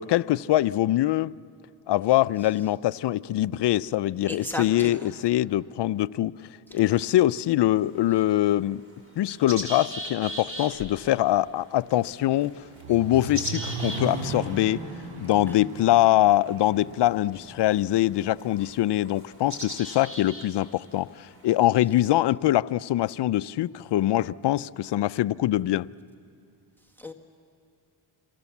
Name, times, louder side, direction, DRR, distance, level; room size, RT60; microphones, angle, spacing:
voice 1, 0.0-1.3 1.9-6.3 6.7-8.8 9.2-14.9 15.2-25.9, left 14 dB, 60° left, 0.6 m, -23 dB
voice 2, 4.3-5.1 6.7-6.8 27.0-27.1, left 1 dB, 5° left, 1.6 m, -35 dB
sound 1, 7.8-21.7, right 1 dB, 25° right, 5.2 m, -41 dB
Accelerating revving vroom, 12.2-18.2, right 4 dB, 80° right, 4.1 m, -37 dB
29.0 x 23.0 x 7.2 m
cardioid pair, 85°, 49 cm